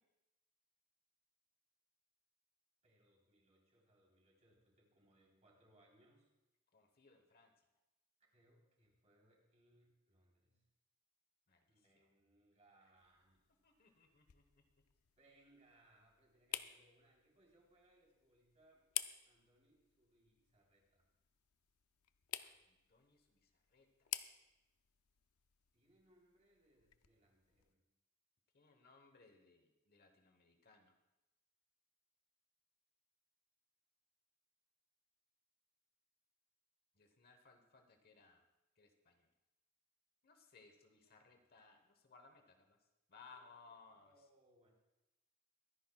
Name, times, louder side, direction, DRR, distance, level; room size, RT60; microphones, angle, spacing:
voice 1, 2.8-6.3 8.3-10.6 11.7-14.2 15.2-18.8 19.3-21.1 25.7-27.8 41.0-41.5 43.3-44.7, right 1 dB, 30° right, -2 dB, 3.6 m, -72 dB
voice 2, 6.7-7.5 11.5-11.6 13.6-14.4 22.4-22.5 22.9-24.1 28.5-30.9 37.0-38.4 38.8-39.3 40.2-42.8 43.1-44.1, left 4 dB, 45° left, 5 dB, 1.1 m, -64 dB
sound 1, 13.0-27.7, left 13 dB, 70° left, 0.5 m, -52 dB
24.0 x 10.0 x 2.3 m, 0.96 s
head